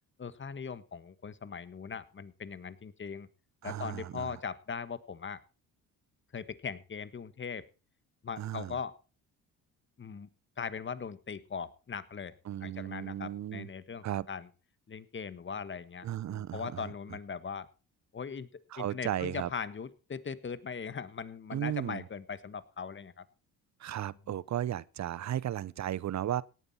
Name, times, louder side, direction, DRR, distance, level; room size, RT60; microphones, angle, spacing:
voice 1, 0.2-3.3 3.6-5.4 6.3-7.6 8.2-8.9 10.0-10.3 10.6-14.5 14.9-17.7 18.1-18.5 18.8-23.2 24.3-24.4, left 6 dB, 35° left, 1.4 m, -40 dB
voice 2, 3.6-4.3 8.4-8.7 12.5-13.7 14.0-14.3 16.0-16.9 18.7-19.5 21.5-22.0 23.8-26.4, right 11 dB, 50° right, 0.8 m, -35 dB
17.5 x 9.3 x 4.2 m
supercardioid pair, 75°, 35 cm